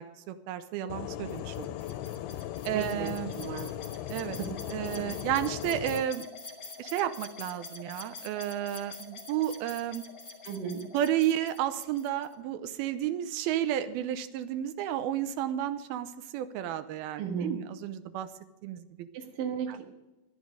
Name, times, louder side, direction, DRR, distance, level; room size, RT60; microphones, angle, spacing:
voice 1, 0.0-1.8 2.7-3.4 4.1-4.4 4.7-6.3 6.8-10.0 10.9-18.3 18.6-19.1 19.7-19.8, right 11 dB, 80° right, 10 dB, 2.5 m, -32 dB
sound 1, 0.9-6.0, left 13 dB, 90° left, 2.7 m, -38 dB
sound 2, 1.3-12.3, left 3 dB, 45° left, 1.1 m, -46 dB
voice 2, 2.7-3.1 3.4-3.7 4.4-4.5 10.4-10.8 17.2-17.5 19.1-19.8, right 7 dB, 65° right, 3 dB, 3.0 m, -34 dB
13.5 x 11.0 x 5.0 m, 1.0 s
omnidirectional pair, 4.6 m